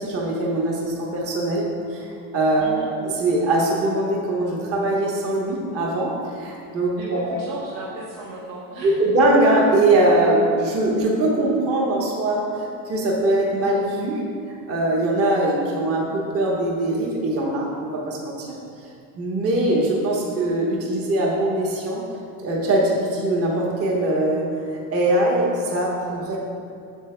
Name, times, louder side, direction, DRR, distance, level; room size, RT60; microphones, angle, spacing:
voice 1, 0.0-2.1 2.3-7.3 8.8-14.2 14.5-18.5 19.2-22.0 22.4-24.5 24.9-26.4, right 1 dB, 30° right, -3 dB, 1.1 m, -22 dB
voice 2, 7.0-9.0, right 2 dB, 70° right, -5 dB, 1.0 m, -35 dB
8.1 x 6.4 x 2.2 m, 2.5 s
supercardioid pair, 130°, 44 cm